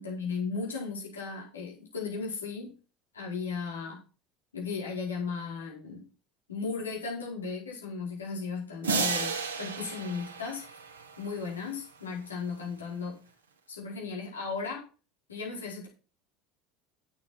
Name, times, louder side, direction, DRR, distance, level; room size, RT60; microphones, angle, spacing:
voice 1, 0.0-2.8 3.1-4.0 4.5-6.0 6.5-10.6 11.2-13.2 13.7-14.8 15.3-15.9, left 4 dB, 80° left, -3 dB, 4.8 m, -36 dB
sound 1, 8.8-11.3, right 4 dB, 75° right, 2.0 m, -32 dB
10.5 x 8.7 x 4.5 m, 0.35 s
figure-of-eight pair, 70°, 0 cm